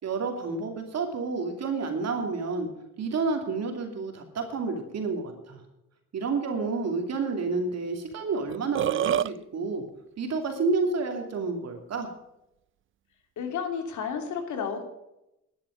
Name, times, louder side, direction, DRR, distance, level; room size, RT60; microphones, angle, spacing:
voice 1, 0.0-2.7 3.0-5.6 6.1-9.8 10.2-12.1, right 4 dB, 60° right, 4 dB, 2.8 m, -30 dB
Burping eructation, 8.1-8.2 8.5-9.3, right 10 dB, 45° right, 0.4 m, -25 dB
voice 2, 13.4-14.8, left 6 dB, 75° left, 5 dB, 2.9 m, -31 dB
12.0 x 10.5 x 6.4 m, 0.87 s
cardioid pair, 90°, 30 cm